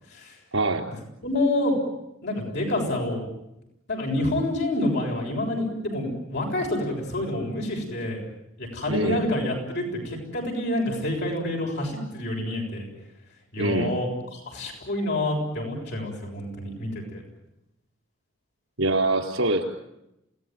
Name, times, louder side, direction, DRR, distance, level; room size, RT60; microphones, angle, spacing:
voice 1, 0.5-0.9 8.9-9.3 13.6-13.9 18.8-19.6, right 2 dB, 90° right, 5 dB, 4.3 m, -24 dB
voice 2, 1.2-1.8 2.2-3.2 3.9-8.2 8.6-12.9 13.5-14.1 14.3-17.2, left 1 dB, 60° left, 1 dB, 7.2 m, -28 dB
28.5 x 19.0 x 9.4 m, 0.87 s
head